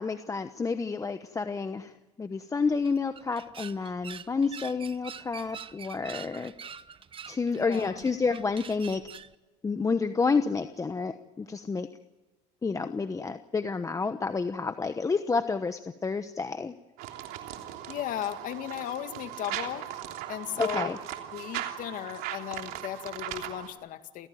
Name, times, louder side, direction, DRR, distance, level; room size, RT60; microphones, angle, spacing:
voice 1, 0.0-1.9 2.2-6.5 7.3-9.1 9.6-11.9 12.6-16.7 20.6-21.0, left 4 dB, 20° left, 10 dB, 1.0 m, -29 dB
sound 1, 2.7-9.3, right 7 dB, 35° right, 1.1 m, -45 dB
voice 2, 7.5-8.0 17.9-19.9 20.3-20.9 21.3-24.3, left 11 dB, 55° left, 9 dB, 2.1 m, -36 dB
sound 2, 17.0-23.7, right 12 dB, 70° right, 3.2 m, -38 dB
29.5 x 16.5 x 9.3 m, 1.2 s
supercardioid pair, 100°, 16 cm